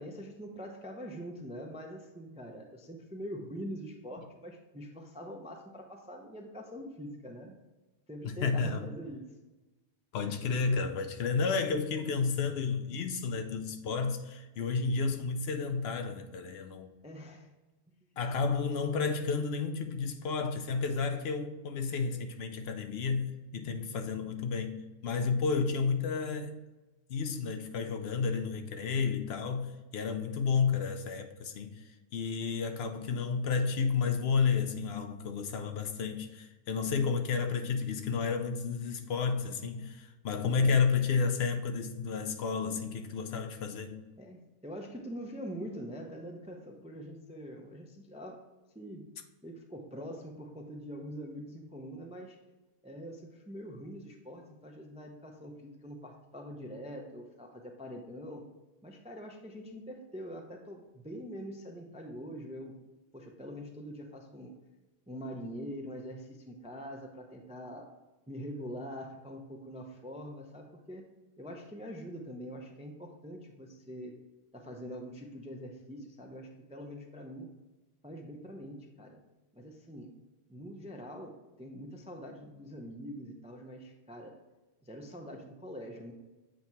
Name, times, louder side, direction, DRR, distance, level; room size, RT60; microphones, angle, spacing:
voice 1, 0.0-7.6 8.1-9.3 17.0-17.5 40.5-40.7 44.2-48.5 48.7-49.1 49.4-52.4 52.8-58.4 58.8-62.7 63.1-64.5 65.1-67.9 68.3-71.1 71.4-74.1 74.5-77.5 78.0-79.2 79.5-80.1 80.5-84.3 84.8-86.1, equal, 10° right, 0.3 m, -44 dB
voice 2, 8.2-8.9 10.1-16.9 18.2-26.5 27.1-31.8 32.1-44.0, left 5 dB, 65° left, 0.8 m, -31 dB
7.6 x 2.8 x 4.5 m
omnidirectional pair, 1.2 m